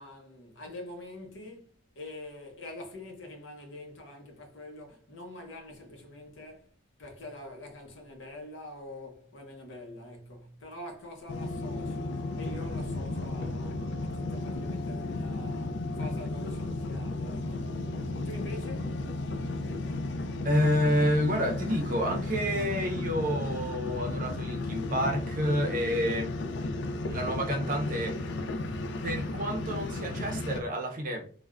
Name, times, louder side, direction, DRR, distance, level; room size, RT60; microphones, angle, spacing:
voice 1, 0.0-1.7 1.9-6.7 7.0-17.9 18.2-19.1, left 1 dB, 75° left, 0.8 m, -45 dB
sound 1, 11.3-30.6, left 2 dB, 60° left, 0.3 m, -34 dB
voice 2, 20.4-26.4 27.1-28.2 29.0-31.3, equal, 45° right, 0.5 m, -29 dB
3.3 x 2.0 x 2.3 m
head